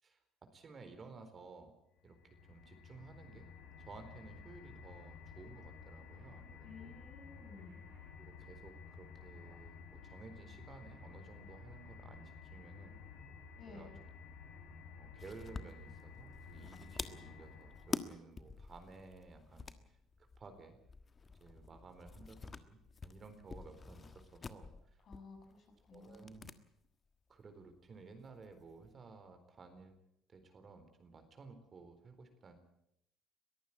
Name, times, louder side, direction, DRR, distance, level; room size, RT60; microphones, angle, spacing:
voice 1, 0.0-1.7 2.0-3.5 3.8-6.9 8.2-13.0 13.7-13.9 15.0-20.8 21.4-25.0 25.9-26.5 27.3-29.9 30.3-32.6, right 4 dB, 40° right, 8 dB, 4.1 m, -55 dB
sound 1, 2.0-18.2, left 5 dB, 90° left, 7.8 m, -53 dB
voice 2, 6.6-7.8 13.6-13.9 25.0-26.3, left 4 dB, 50° left, 3 dB, 6.9 m, -54 dB
sound 2, 15.2-26.6 26.8-26.9 28.2-28.9, left 4 dB, 30° left, 1.4 m, -48 dB
22.5 x 14.5 x 8.8 m, 0.77 s
supercardioid pair, 70°, 0 cm